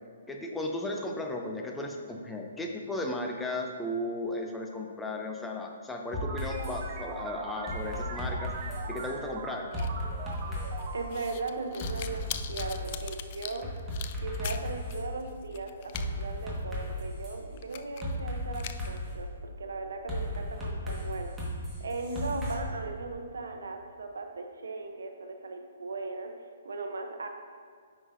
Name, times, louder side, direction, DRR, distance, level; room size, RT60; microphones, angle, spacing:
voice 1, 0.3-8.5 8.9-9.7, left 1 dB, 5° left, 1 dB, 0.7 m, -35 dB
sound 1, 6.1-6.8 7.7-9.1 9.7-10.9 11.8-13.1 13.6-15.0 15.9-17.3 18.0-19.2 20.1-22.5, left 1 dB, 10° right, 1.7 m, -35 dB
sound 2, 6.1-12.4, right 4 dB, 40° right, 0.8 m, -41 dB
sound 3, 9.7-14.9 15.2-16.0 16.4-16.5 17.0-17.1 17.6-18.2 18.5-19.0, left 10 dB, 45° left, 0.4 m, -42 dB
voice 2, 10.9-13.7 14.2-19.3 19.6-21.4 21.8-27.3, right 3 dB, 80° right, 5 dB, 0.8 m, -38 dB
9.1 x 5.9 x 2.7 m, 2.1 s
hypercardioid pair, 135°, 0 cm